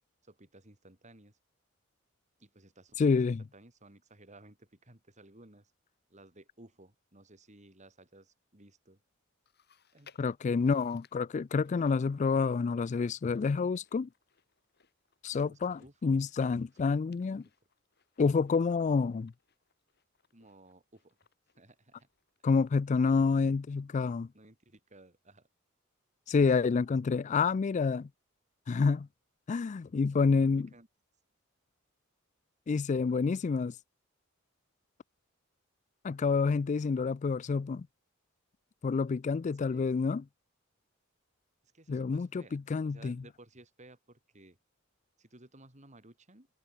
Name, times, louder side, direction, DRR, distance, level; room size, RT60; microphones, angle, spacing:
voice 1, 0.2-1.4 2.4-3.2 3.5-5.7 6.1-9.0 9.9-10.6 15.3-16.2 20.3-21.2 21.6-22.1 23.0-23.4 24.3-25.5 27.0-27.4 30.2-30.9 39.6-39.9 41.7-44.6 45.2-46.5, right 2 dB, 35° right, 4.5 m, -57 dB
voice 2, 3.0-3.4 10.2-14.1 15.2-17.4 18.2-19.3 22.4-24.3 26.3-28.1 28.7-29.1 29.5-30.7 32.7-33.8 36.0-37.9 38.8-40.2 41.9-43.2, left 4 dB, 35° left, 0.3 m, -28 dB
Chewing mastication, 9.5-23.0 23.3-23.4 24.2-24.3, left 7 dB, 55° left, 3.8 m, -67 dB
head